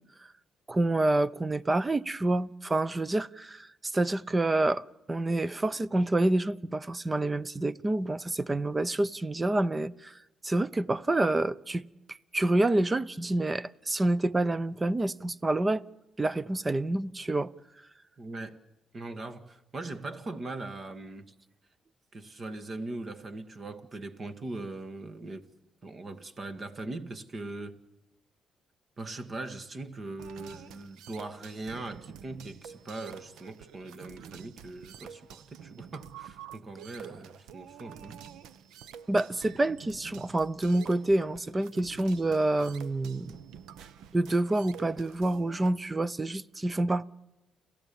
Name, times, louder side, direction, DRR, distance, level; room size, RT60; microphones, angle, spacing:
voice 1, 0.7-10.1 10.4-15.8 16.2-17.5 39.1-43.4 44.1-47.0, right 2 dB, 20° right, 0.7 m, -28 dB
voice 2, 18.2-18.6 18.9-21.3 22.1-25.5 25.8-27.8 29.0-38.2, right 2 dB, 40° right, 1.9 m, -40 dB
sound 1, 30.2-45.7, right 8 dB, 85° right, 0.9 m, -48 dB
30.0 x 14.5 x 7.2 m
cardioid pair, 90°, 0 cm